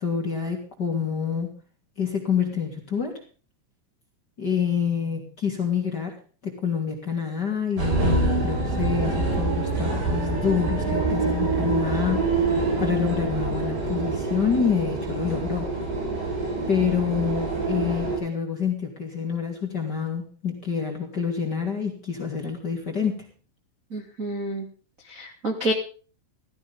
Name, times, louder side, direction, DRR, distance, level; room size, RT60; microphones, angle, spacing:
voice 1, 0.0-1.5 2.0-3.2 4.4-6.1 6.4-12.5 12.8-15.7 16.7-23.3, left 7 dB, 30° left, 0 dB, 2.4 m, -27 dB
sound 1, 7.8-18.2, right 3 dB, 60° right, 8.4 m, -26 dB
voice 2, 23.9-24.6 25.1-25.7, right 1 dB, 30° right, -1 dB, 1.4 m, -28 dB
15.5 x 15.5 x 3.7 m, 0.38 s
omnidirectional pair, 5.7 m